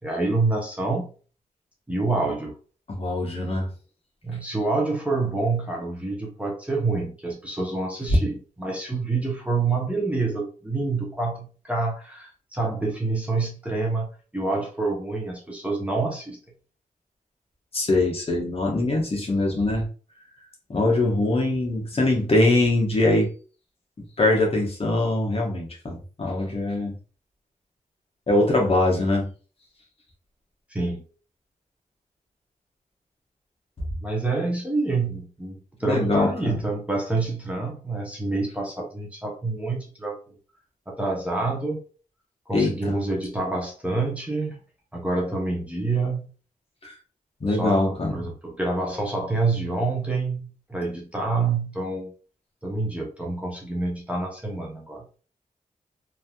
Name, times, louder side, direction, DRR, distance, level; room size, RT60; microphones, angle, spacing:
voice 1, 0.0-1.1 1.9-2.5 4.2-16.4 30.7-31.0 34.0-40.2 40.9-41.8 42.5-44.6 44.9-46.3 47.5-52.1 52.6-55.0, right 3 dB, 10° right, -2 dB, 0.8 m, -27 dB
voice 2, 2.9-3.7 17.7-19.9 20.7-23.3 24.2-27.0 28.3-29.3 35.8-36.6 42.5-42.9 46.8-46.9 47.4-48.1, left 2 dB, 40° left, -1 dB, 1.0 m, -22 dB
3.2 x 2.6 x 2.3 m, 0.38 s
wide cardioid pair, 95°, 14 cm